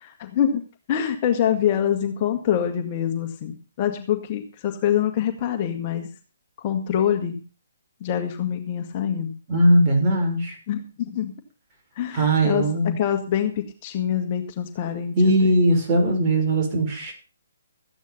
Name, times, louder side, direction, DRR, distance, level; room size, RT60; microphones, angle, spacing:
voice 1, 0.0-6.1 6.6-7.4 8.0-9.3 10.7-11.3 12.0-12.6 13.0-15.3, left 9 dB, 35° left, 5 dB, 1.9 m, -25 dB
voice 2, 9.5-10.6 12.1-13.0 15.2-17.1, right 1 dB, 30° right, 1 dB, 6.0 m, -19 dB
14.5 x 9.5 x 5.6 m, 0.34 s
figure-of-eight pair, 135°, 0 cm